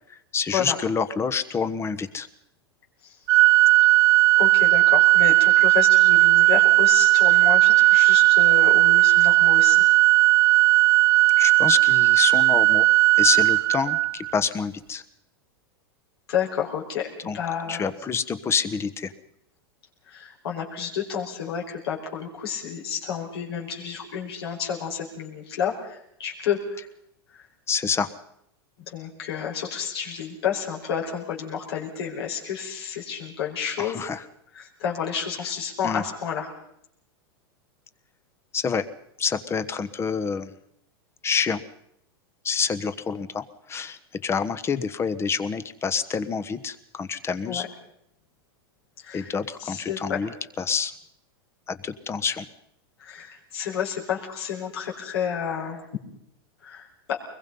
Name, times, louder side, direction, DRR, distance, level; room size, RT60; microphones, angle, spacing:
voice 1, 0.1-2.3 11.4-12.9 13.2-15.0 17.3-17.4 17.7-19.1 27.7-28.1 33.8-34.2 35.8-36.0 38.5-38.9 39.2-40.5 41.2-41.6 42.4-47.7 49.1-50.9 51.7-52.5, left 6 dB, 20° left, 13 dB, 1.2 m, -27 dB
Organ, 3.3-14.3, right 19 dB, 70° right, 0.9 m, -17 dB
voice 2, 4.4-9.8 16.3-17.1 17.3-17.8 20.1-26.8 27.3-27.4 28.9-34.0 34.5-36.5 47.4-47.7 49.0-49.3 49.6-50.2 53.0-55.8 56.6-57.2, left 8 dB, 75° left, -2 dB, 5.1 m, -30 dB
24.0 x 21.5 x 5.6 m, 0.74 s
hypercardioid pair, 125°, 13 cm